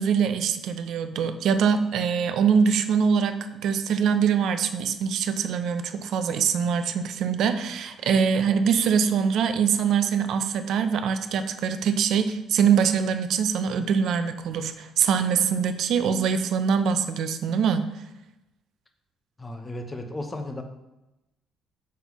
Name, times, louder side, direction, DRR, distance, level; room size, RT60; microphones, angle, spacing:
voice 1, 0.0-17.8, right 7 dB, 60° right, 9 dB, 0.6 m, -23 dB
voice 2, 19.4-20.6, left 1 dB, 15° left, 5 dB, 0.7 m, -34 dB
7.2 x 5.7 x 3.0 m, 0.95 s
cardioid pair, 155°, 0 cm